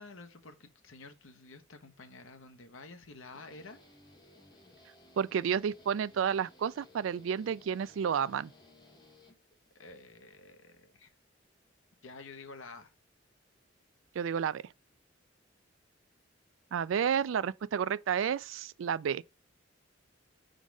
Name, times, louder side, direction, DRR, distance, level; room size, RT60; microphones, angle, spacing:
voice 1, 0.0-3.8 9.7-11.1 12.0-12.9, left 3 dB, 85° left, 1.1 m, -50 dB
Guitar, 3.3-9.9, left 1 dB, 20° left, 1.1 m, -59 dB
voice 2, 5.2-8.5 14.2-14.6 16.7-19.2, right 7 dB, 75° right, 0.3 m, -31 dB
5.2 x 3.9 x 4.7 m
head